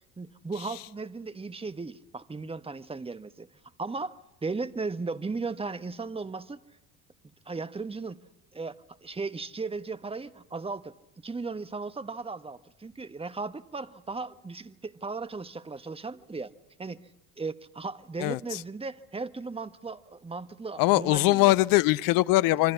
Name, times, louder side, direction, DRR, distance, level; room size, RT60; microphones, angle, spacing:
voice 1, 0.2-3.5 3.8-6.6 7.4-8.2 8.5-8.7 9.0-10.9 11.2-16.5 16.8-17.1 17.4-21.5, right 4 dB, 15° right, 1.4 m, -36 dB
voice 2, 18.2-18.6 20.8-22.7, left 18 dB, 60° left, 0.9 m, -22 dB
27.0 x 25.0 x 7.1 m
hypercardioid pair, 70°, 40 cm